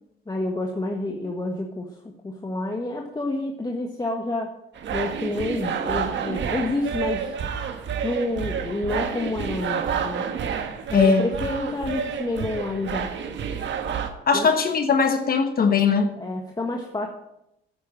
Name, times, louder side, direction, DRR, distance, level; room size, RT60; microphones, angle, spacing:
voice 1, 0.3-1.9 2.2-4.5 4.9-7.4 8.0-10.3 10.9-13.1 14.3-14.5 16.2-17.1, left 2 dB, 20° left, 2 dB, 1.6 m, -29 dB
sound 1, 4.8-14.1, right 7 dB, 65° right, 1.6 m, -29 dB
voice 2, 10.9-11.3 14.3-16.1, left 5 dB, 50° left, 7 dB, 1.2 m, -19 dB
9.4 x 9.3 x 7.6 m, 0.82 s
cardioid pair, 90°, 20 cm